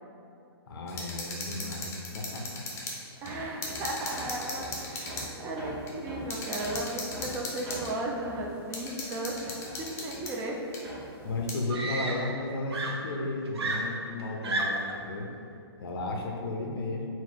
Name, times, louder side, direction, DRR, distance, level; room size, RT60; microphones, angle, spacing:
voice 1, 0.7-2.6 11.2-15.3 15.8-17.1, left 2 dB, 65° left, 1 dB, 0.6 m, -34 dB
sound 1, 0.9-3.0 3.3-3.4 3.6-5.3 5.9-6.0 6.3-7.9 8.7-10.3 10.7-10.8 11.5-11.6, left 2 dB, 20° left, 0.6 m, -38 dB
voice 2, 3.2-10.6, right 1 dB, 20° right, 0 dB, 0.4 m, -35 dB
Hammer, 3.3-10.6 10.8-12.6, equal, 35° right, 1.0 m, -43 dB
Screaming, 10.9-11.0 11.7-12.4 12.7-15.0 16.0-16.3, right 2 dB, 85° right, 0.6 m, -32 dB
4.1 x 2.2 x 4.0 m, 2.5 s
hypercardioid pair, 130°, 13 cm